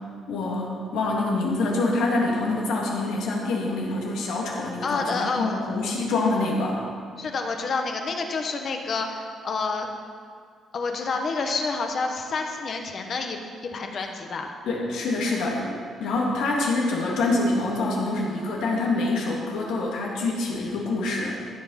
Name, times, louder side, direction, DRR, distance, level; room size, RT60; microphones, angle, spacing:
voice 1, 0.3-6.8 14.6-15.7 16.0-21.4, left 2 dB, 80° left, -3 dB, 2.8 m, -26 dB
voice 2, 4.8-5.6 7.2-9.9 10.7-14.5, left 4 dB, 40° left, 4 dB, 1.2 m, -29 dB
14.5 x 8.2 x 5.9 m, 2.2 s
cardioid pair, 165°, 0 cm